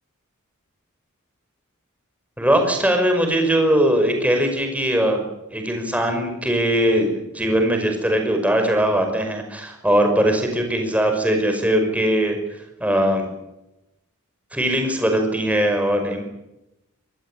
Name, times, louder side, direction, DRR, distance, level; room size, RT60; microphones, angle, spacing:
voice 1, 2.4-5.2 5.5-12.4 12.8-13.3 14.5-16.2, right 1 dB, 5° right, 4 dB, 5.6 m, -20 dB
25.0 x 19.0 x 8.8 m, 0.90 s
head